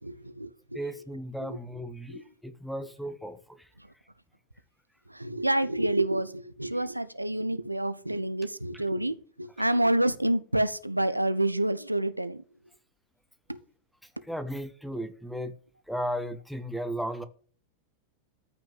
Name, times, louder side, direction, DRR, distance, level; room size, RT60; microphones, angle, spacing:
voice 1, 0.0-0.8 1.4-1.6 2.1-2.2 3.8-3.9 5.1-12.4 13.5-13.6 14.2-14.3, right 1 dB, 85° right, 0.8 m, -28 dB
voice 2, 0.7-3.4 14.3-15.5 15.9-17.2, equal, ahead, 1.5 m, -35 dB
14.0 x 6.2 x 8.8 m
figure-of-eight pair, 90°, 0 cm